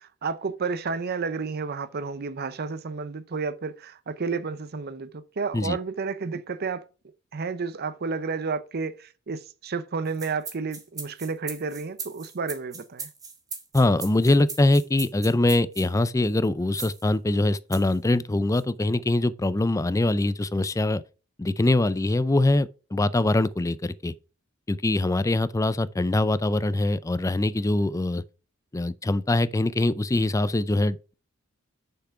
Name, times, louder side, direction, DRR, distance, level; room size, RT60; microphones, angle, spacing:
voice 1, 0.0-6.8 7.3-13.1, right 4 dB, 50° right, 0.6 m, -31 dB
sound 1, 10.1-15.9 16.7-17.1 17.7-18.0 18.5-18.6, right 4 dB, 20° right, 1.3 m, -38 dB
voice 2, 13.7-21.0 21.4-24.1 24.7-28.2 28.7-31.1, left 2 dB, 15° left, 0.4 m, -23 dB
6.8 x 5.9 x 4.6 m
head